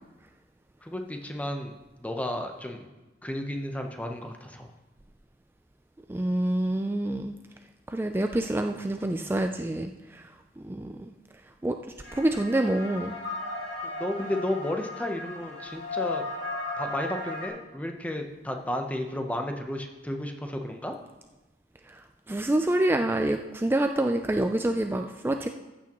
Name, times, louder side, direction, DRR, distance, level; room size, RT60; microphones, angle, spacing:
voice 1, 0.8-1.7 2.0-2.9 3.2-4.7 13.8-16.3 16.8-21.0, left 1 dB, 10° left, 4 dB, 0.8 m, -33 dB
voice 2, 6.1-7.3 7.9-10.3 10.6-11.1 11.6-11.8 12.1-13.1 21.9-22.0 22.3-25.5, right 1 dB, 10° right, 5 dB, 0.3 m, -27 dB
sound 1, 12.0-17.5, left 2 dB, 70° left, 1.9 m, -35 dB
14.5 x 8.4 x 3.0 m, 1.1 s
head